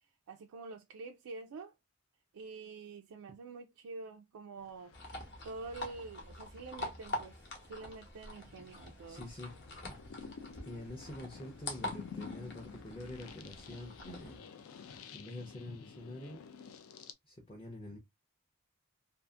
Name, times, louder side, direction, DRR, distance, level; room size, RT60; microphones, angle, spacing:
voice 1, 0.3-1.7 2.3-4.9 5.4-7.3 7.7-9.2, right 3 dB, 85° right, 0.4 m, -47 dB
sound 1, 4.6-6.7 7.3-7.6 8.3-17.1, left 6 dB, 80° left, 0.4 m, -51 dB
sound 2, 4.9-14.4, left 1 dB, 50° left, 0.9 m, -45 dB
voice 2, 9.1-9.5 9.9-10.2 10.6-14.5 14.8-16.4 17.3-18.0, left 1 dB, 25° left, 0.5 m, -46 dB
2.6 x 2.4 x 2.3 m
head